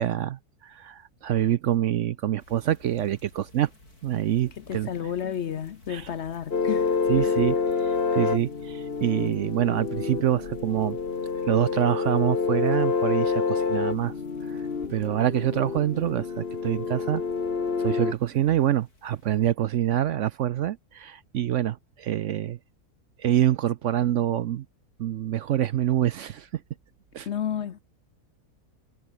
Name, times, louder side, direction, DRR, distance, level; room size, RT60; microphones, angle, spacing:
voice 1, 0.0-3.7 4.0-5.1 5.9-6.1 7.1-7.6 7.8-11.0 11.5-14.1 14.5-14.6 14.9-17.2 17.8-22.6 23.2-24.7 25.0-26.6 27.1-27.3, right 12 dB, 65° right, 0.8 m, -26 dB
sound 1, 2.4-19.4, left 2 dB, 80° left, 8.4 m, -55 dB
voice 2, 4.6-7.4 27.3-27.8, left 9 dB, 55° left, 0.9 m, -32 dB
sound 2, 6.5-18.1, left 5 dB, 40° left, 1.7 m, -28 dB
omnidirectional pair, 1.6 m